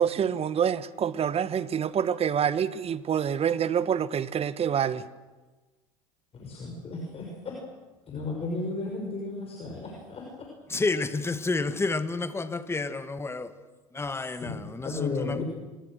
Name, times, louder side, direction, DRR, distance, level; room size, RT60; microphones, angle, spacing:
voice 1, 0.0-5.0, right 8 dB, 35° right, 1.4 m, -26 dB
voice 2, 6.3-7.5 8.1-10.3 14.4-15.4, left 3 dB, 35° left, 6.1 m, -34 dB
voice 3, 10.7-13.5 14.0-14.5 15.0-15.4, left 3 dB, 15° left, 1.6 m, -29 dB
27.5 x 23.5 x 6.6 m
hypercardioid pair, 75°, 18 cm